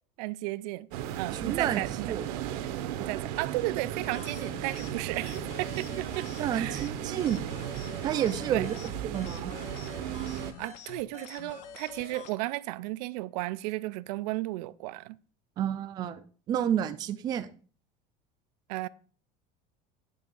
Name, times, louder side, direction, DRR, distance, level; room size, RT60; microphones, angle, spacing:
voice 1, 0.2-0.9 1.2-2.1 3.0-6.3 6.5-6.9 8.5-8.7 10.6-15.2 18.7-18.9, right 19 dB, 90° right, 0.4 m, -34 dB
sound 1, 0.9-10.5, right 11 dB, 70° right, 0.9 m, -35 dB
voice 2, 1.3-2.2 6.4-7.4 8.0-8.7 9.0-9.5 15.6-17.5, right 10 dB, 20° right, 0.3 m, -30 dB
sound 2, 4.0-12.3, left 8 dB, 40° left, 0.6 m, -46 dB
9.3 x 3.5 x 5.3 m
cardioid pair, 180°, 21 cm